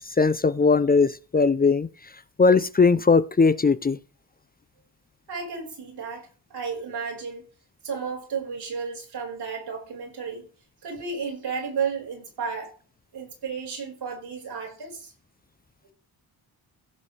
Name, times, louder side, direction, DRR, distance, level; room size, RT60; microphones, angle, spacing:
voice 1, 0.2-1.9 2.4-4.0, left 4 dB, 25° left, 0.5 m, -19 dB
voice 2, 5.3-7.4 7.8-10.4 10.8-12.7 13.1-15.1, right 5 dB, 85° right, 4.9 m, -33 dB
16.0 x 7.2 x 3.3 m
wide cardioid pair, 115°, 38 cm